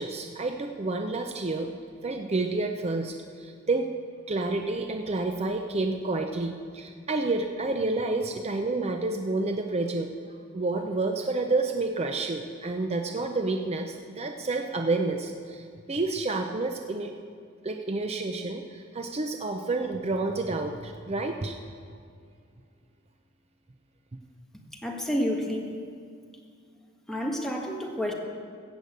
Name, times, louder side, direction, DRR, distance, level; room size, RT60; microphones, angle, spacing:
voice 1, 0.0-1.7 2.0-3.9 4.3-10.1 10.5-17.1 17.6-21.5, right 3 dB, 30° right, 4 dB, 0.6 m, -29 dB
voice 2, 24.7-25.7 27.1-28.1, equal, ahead, -1 dB, 1.6 m, -29 dB
15.5 x 6.9 x 8.0 m, 2.2 s
head